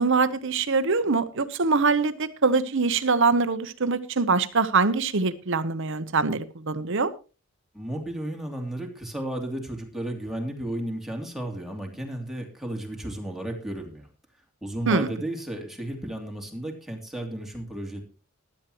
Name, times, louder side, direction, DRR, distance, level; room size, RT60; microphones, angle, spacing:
voice 1, 0.0-7.1 14.9-15.1, right 4 dB, 65° right, 13 dB, 1.0 m, -23 dB
voice 2, 7.7-14.1 14.6-18.0, right 1 dB, ahead, 1 dB, 2.9 m, -33 dB
15.5 x 12.0 x 3.1 m, 0.33 s
head